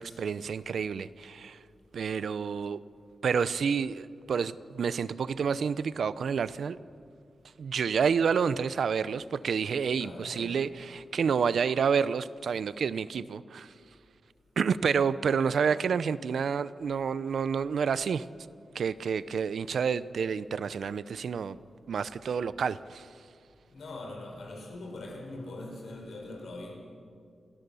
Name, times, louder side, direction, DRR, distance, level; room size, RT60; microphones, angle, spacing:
voice 1, 0.0-1.6 1.9-2.8 3.2-6.8 7.6-13.7 14.6-18.3 18.7-21.6 21.9-23.1, right 6 dB, 75° right, 0.6 m, -29 dB
voice 2, 9.9-10.7 23.7-26.8, left 2 dB, 75° left, 5.0 m, -42 dB
28.0 x 17.5 x 7.0 m
wide cardioid pair, 150°, 0 cm